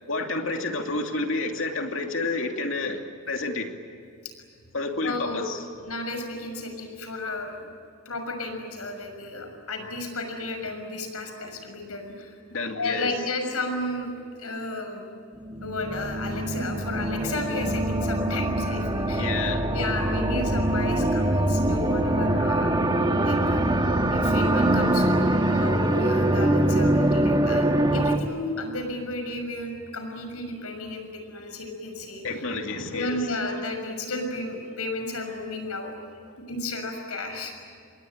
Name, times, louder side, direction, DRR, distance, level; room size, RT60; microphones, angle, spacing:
voice 1, 0.1-3.0 3.3-3.7 4.7-5.6 12.5-13.1 19.2-19.7 32.2-33.2, left 3 dB, 60° left, 3 dB, 2.7 m, -29 dB
voice 2, 5.0-5.4 5.8-7.5 8.0-12.4 12.7-14.1 14.4-15.0 15.6-19.3 19.7-22.8 23.1-23.6 24.1-27.7 27.9-32.4 32.9-35.9 36.5-37.5, left 2 dB, 90° left, 5 dB, 6.3 m, -33 dB
sound 1, 15.4-28.2, right 1 dB, 20° right, 1.4 m, -23 dB
27.5 x 22.0 x 9.1 m, 2.3 s
head